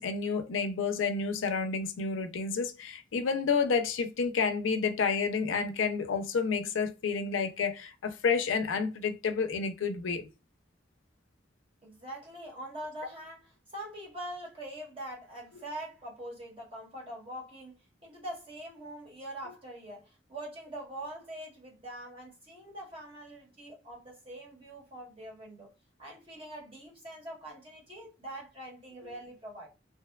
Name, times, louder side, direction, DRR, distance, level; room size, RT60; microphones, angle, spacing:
voice 1, 0.0-10.3 29.0-29.1, left 5 dB, 85° left, 0.4 m, -30 dB
voice 2, 11.8-17.7 18.0-25.7 26.0-29.7, right 1 dB, 30° right, 1.0 m, -43 dB
2.7 x 2.1 x 2.2 m
head